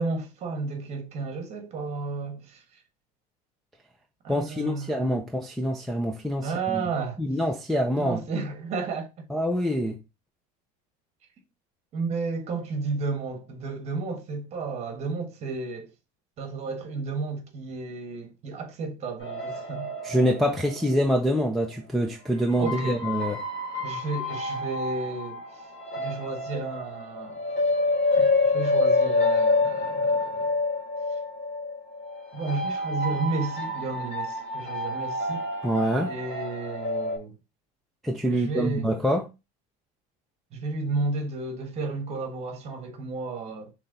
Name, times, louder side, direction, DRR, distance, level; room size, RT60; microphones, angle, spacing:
voice 1, 0.0-2.8 4.2-5.2 6.4-7.2 8.0-9.1 11.9-15.9 16.4-19.9 22.6-23.0 23.8-25.7 26.0-27.4 28.1-30.6 32.3-35.5 36.1-37.4 38.3-38.9 40.5-43.7, right 3 dB, 30° right, 1.2 m, -32 dB
voice 2, 4.3-6.8 7.2-8.2 9.3-10.0 20.0-23.4 35.6-36.1 38.0-39.2, equal, ahead, 0.4 m, -25 dB
sound 1, 19.2-21.7 22.5-37.2, left 2 dB, 35° left, 2.4 m, -28 dB
5.8 x 3.3 x 2.6 m
cardioid pair, 150°, 20 cm